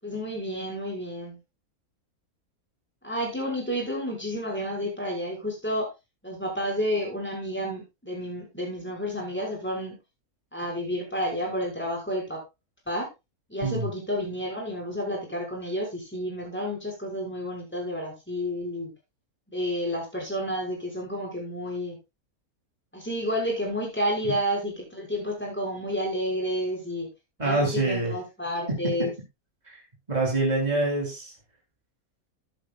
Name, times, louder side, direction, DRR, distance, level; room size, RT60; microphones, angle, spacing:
voice 1, 0.0-1.4 3.0-5.9 6.2-10.0 10.5-12.4 12.9-13.1 13.5-18.9 19.5-22.0 22.9-27.1 27.4-29.1, equal, 5° left, -2 dB, 6.3 m, -30 dB
voice 2, 27.4-28.2 28.7-29.1 29.7-29.8 30.1-31.3, right 2 dB, 25° right, -1 dB, 3.7 m, -26 dB
14.0 x 10.5 x 2.5 m, 0.25 s
omnidirectional pair, 1.5 m